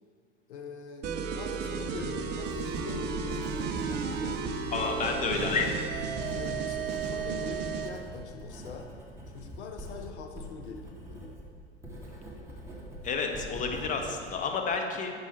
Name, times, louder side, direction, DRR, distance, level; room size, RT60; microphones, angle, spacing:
voice 1, 0.5-3.6 3.9-4.6 6.3-8.9 9.3-11.4, left 5 dB, 70° left, 5 dB, 0.7 m, -43 dB
sound 1, 1.0-8.0, right 5 dB, 30° right, 0.6 m, -33 dB
Writing, 1.6-14.3, equal, 10° right, 1.5 m, -44 dB
voice 2, 4.7-5.8 13.0-15.1, left 4 dB, 20° left, 3 dB, 0.8 m, -30 dB
7.1 x 5.4 x 4.3 m, 2.1 s
figure-of-eight pair, 90°, 35 cm